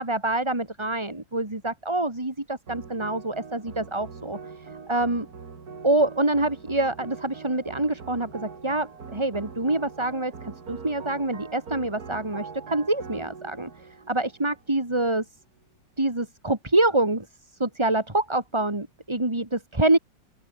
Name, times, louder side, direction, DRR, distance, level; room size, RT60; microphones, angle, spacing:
voice 1, 0.0-4.4 4.9-5.3 5.8-13.7 14.1-15.2 16.0-17.3 17.6-20.0, right 2 dB, 15° right, 3.3 m, -26 dB
sound 1, 2.7-15.1, right 5 dB, 50° right, 2.7 m, -42 dB
open air
omnidirectional pair, 2.1 m